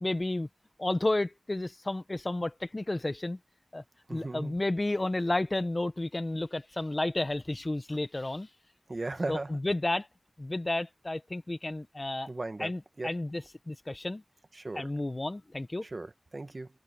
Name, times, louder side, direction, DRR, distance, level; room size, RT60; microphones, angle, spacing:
voice 1, 0.0-0.5 0.8-3.4 3.7-3.8 4.1-8.5 9.3-10.1 10.4-12.3 12.6-14.2 14.7-15.9, left 2 dB, 35° left, 1.4 m, -32 dB
voice 2, 4.1-4.6 8.9-9.6 12.3-13.2 14.5-14.9 15.8-16.7, right 2 dB, 45° right, 1.7 m, -37 dB
wide cardioid pair, 65°, 0 cm